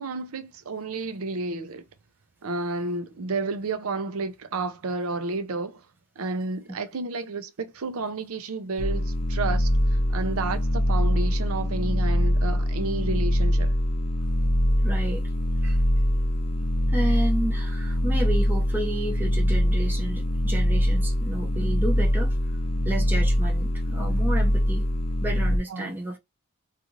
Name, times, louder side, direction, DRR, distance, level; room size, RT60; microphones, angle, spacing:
voice 1, 0.0-1.8 2.4-5.8 6.2-13.7 25.7-25.9, right 3 dB, 75° right, 0.5 m, -31 dB
sound 1, 8.8-25.6, equal, 25° left, 0.4 m, -23 dB
voice 2, 14.8-15.3 15.6-15.8 16.9-22.4 22.8-24.8 25.2-26.2, right 1 dB, 10° right, 0.7 m, -31 dB
2.5 x 2.5 x 3.0 m
head